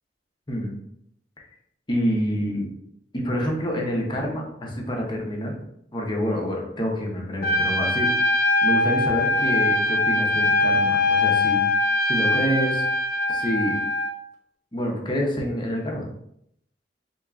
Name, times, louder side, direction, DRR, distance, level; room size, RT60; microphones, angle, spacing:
voice 1, 1.9-2.7 3.1-5.6 5.9-8.1 8.6-11.6 12.1-12.8 13.3-13.8 14.7-16.1, equal, 25° left, 0 dB, 0.8 m, -27 dB
Trumpet, 7.4-14.1, left 2 dB, 60° left, 0.5 m, -22 dB
4.4 x 2.9 x 2.4 m, 0.73 s
head